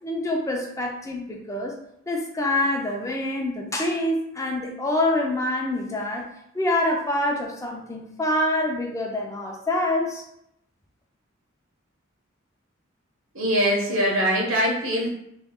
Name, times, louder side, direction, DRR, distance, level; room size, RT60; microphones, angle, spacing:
voice 1, 0.0-1.7 2.1-6.3 6.5-10.2, left 1 dB, 15° left, 0 dB, 0.5 m, -26 dB
voice 2, 13.3-15.1, equal, 90° right, -2 dB, 1.3 m, -22 dB
3.1 x 3.0 x 3.6 m, 0.77 s
head